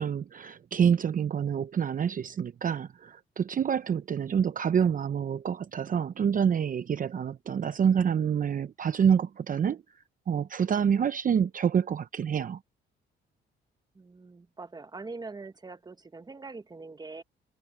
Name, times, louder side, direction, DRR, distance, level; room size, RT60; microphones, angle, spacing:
voice 1, 0.0-9.8 10.3-12.6, right 7 dB, 45° right, 0.7 m, -27 dB
voice 2, 13.9-17.2, right 3 dB, 20° right, 1.1 m, -43 dB
cardioid pair, 90°, 20 cm